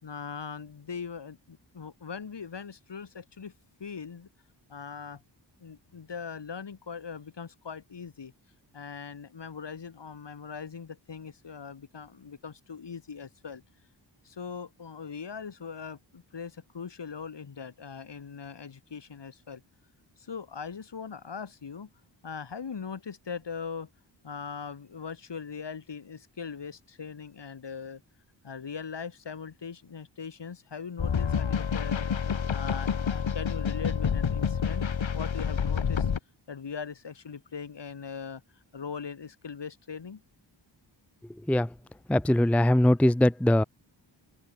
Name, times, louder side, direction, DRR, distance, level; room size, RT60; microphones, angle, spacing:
voice 1, 0.0-3.5 3.8-4.3 4.7-5.2 5.6-8.3 8.7-13.6 14.2-19.6 20.2-21.9 22.2-23.9 24.2-28.0 28.4-32.1 32.5-34.9 35.1-36.1 36.5-38.4 38.7-40.2, left 6 dB, 65° left, 4.8 m, -40 dB
sound 1, 31.0-36.2, left 7 dB, 80° left, 4.5 m, -28 dB
voice 2, 42.1-43.6, left 1 dB, 5° left, 0.5 m, -21 dB
open air
wide cardioid pair, 100°, 45 cm